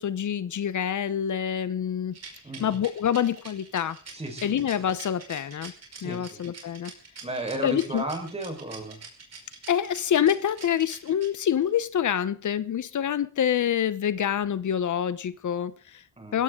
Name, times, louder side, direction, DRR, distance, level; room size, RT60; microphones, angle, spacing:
voice 1, 0.0-2.2 2.6-4.0 4.4-5.7 6.0-6.9 7.6-8.0 9.7-16.0 16.3-16.4, left 9 dB, 80° left, 14 dB, 1.0 m, -26 dB
Rattle, 2.1-11.7, right 5 dB, 60° right, 5.5 m, -45 dB
voice 2, 4.1-4.5 6.0-6.4 7.2-9.0 16.2-16.4, right 2 dB, 20° right, 4 dB, 4.7 m, -34 dB
21.5 x 16.5 x 3.8 m, 0.38 s
wide cardioid pair, 170°, 29 cm